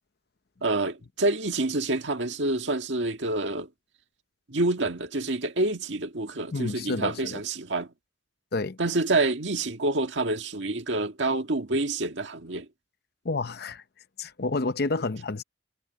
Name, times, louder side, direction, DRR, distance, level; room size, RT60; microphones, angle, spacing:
voice 1, 0.6-3.7 4.5-7.9 8.8-12.7, right 2 dB, 75° right, 1.8 m, -27 dB
voice 2, 6.5-7.4 8.5-8.8 13.2-13.8 14.2-15.4, left 3 dB, 60° left, 0.8 m, -29 dB
head